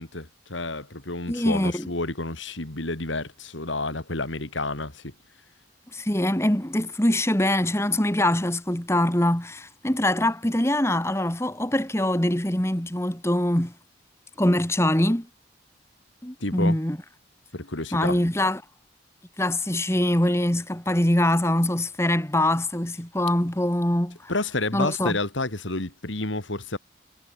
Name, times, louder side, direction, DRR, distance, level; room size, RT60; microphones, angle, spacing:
voice 1, 0.0-5.1 16.4-16.8 17.5-18.2 24.3-26.8, left 2 dB, 85° left, 3.5 m, -30 dB
voice 2, 1.3-1.9 5.9-13.7 14.4-15.3 16.2-17.0 17.9-18.6 19.4-24.3 24.7-25.2, left 1 dB, 15° left, 1.9 m, -23 dB
head